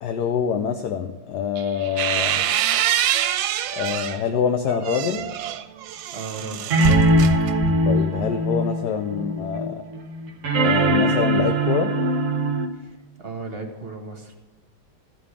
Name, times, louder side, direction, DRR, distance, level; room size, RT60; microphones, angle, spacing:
voice 1, 0.0-2.5 3.7-5.3 7.9-9.8 10.6-11.9, left 7 dB, 65° left, 7 dB, 1.1 m, -25 dB
sound 1, 1.6-4.2 4.7-8.0, right 10 dB, 75° right, 1.3 m, -25 dB
sound 2, 5.1-5.2 6.7-12.7, equal, 50° right, 1.0 m, -21 dB
voice 2, 5.9-6.9 12.7-14.3, right 3 dB, 35° right, 3 dB, 1.3 m, -36 dB
14.5 x 5.4 x 8.2 m, 1.2 s
omnidirectional pair, 2.1 m